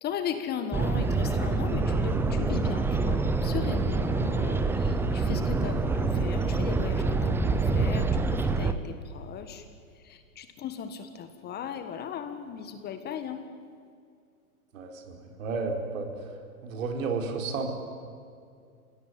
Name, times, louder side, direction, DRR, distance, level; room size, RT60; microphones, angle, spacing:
voice 1, 0.0-8.1 8.3-9.6 10.1-13.4, left 8 dB, 20° left, 8 dB, 1.6 m, -37 dB
sound 1, 0.7-8.7, right 3 dB, 5° right, 0.7 m, -26 dB
voice 2, 14.7-16.1 16.6-17.7, right 4 dB, 55° right, 3 dB, 4.5 m, -32 dB
27.5 x 17.0 x 9.5 m, 2.3 s
hypercardioid pair, 125°, 46 cm